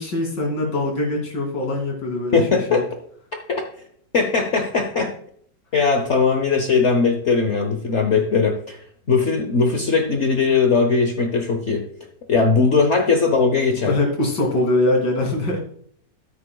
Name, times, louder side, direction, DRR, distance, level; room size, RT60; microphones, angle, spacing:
voice 1, 0.0-2.4 2.7-2.8 13.7-15.6, left 2 dB, 75° left, 0 dB, 3.3 m, -22 dB
voice 2, 2.3-2.8 3.5-3.7 4.1-5.2 5.7-8.8 9.1-11.9 12.3-13.9, left 4 dB, 50° left, 4 dB, 1.0 m, -19 dB
15.0 x 8.6 x 2.3 m, 0.63 s
omnidirectional pair, 1.9 m